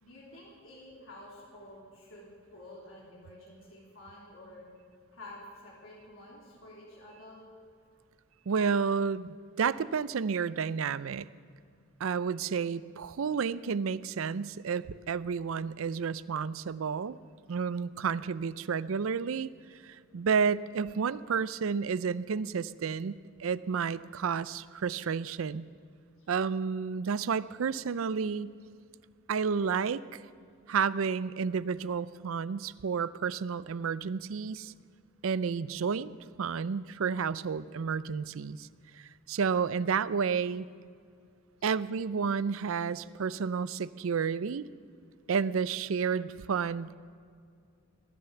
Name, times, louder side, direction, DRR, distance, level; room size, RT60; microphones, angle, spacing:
voice 1, 0.0-4.7 5.1-7.4 26.2-26.3 41.6-41.7, left 1 dB, 80° left, -4 dB, 3.3 m, -50 dB
voice 2, 8.5-11.3 12.0-17.2 17.5-19.5 19.8-25.7 26.3-28.5 29.3-30.0 30.7-34.7 35.2-36.1 36.4-38.7 39.3-40.7 41.6-44.7 45.3-46.9, right 6 dB, 80° right, 17 dB, 0.5 m, -31 dB
19.0 x 10.5 x 6.9 m, 2.3 s
head